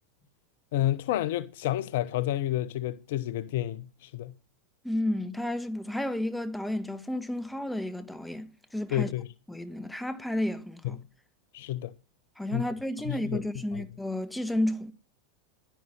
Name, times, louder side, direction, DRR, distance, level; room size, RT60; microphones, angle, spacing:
voice 1, 0.7-4.3 8.9-9.3 10.8-11.0 11.5-11.9 12.5-12.7 13.0-13.4 13.7-13.8, left 13 dB, 55° left, 0.7 m, -30 dB
voice 2, 4.8-9.1 9.5-11.0 12.4-14.9, left 1 dB, 5° left, 1.5 m, -32 dB
11.0 x 10.5 x 7.2 m
figure-of-eight pair, 85°, 0 cm